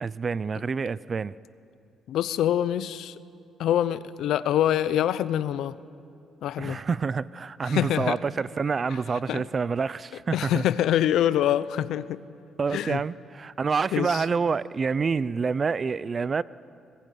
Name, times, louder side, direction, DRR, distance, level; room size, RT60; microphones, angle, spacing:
voice 1, 0.0-1.4 6.6-10.6 12.6-16.4, right 5 dB, 40° right, 18 dB, 0.6 m, -27 dB
voice 2, 2.1-3.1 3.6-5.7 6.4-6.8 7.7-8.2 9.3-9.4 10.3-12.2 12.7-13.0 13.9-14.2, left 11 dB, 80° left, 16 dB, 0.8 m, -25 dB
25.5 x 20.5 x 9.3 m, 2.5 s
cardioid pair, 90°, 0 cm